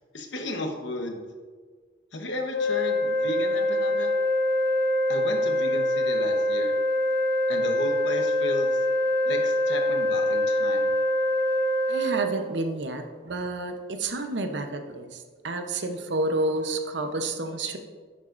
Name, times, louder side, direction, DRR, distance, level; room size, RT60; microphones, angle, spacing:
voice 1, 0.1-1.2 2.1-4.1 5.1-6.8 7.5-8.8 9.2-10.9, left 1 dB, 80° left, 4 dB, 1.1 m, -34 dB
sound 1, 2.5-12.2, left 1 dB, 55° left, 1.1 m, -24 dB
voice 2, 11.9-17.8, right 2 dB, 75° right, 6 dB, 0.8 m, -30 dB
9.7 x 7.5 x 2.6 m, 1.5 s
head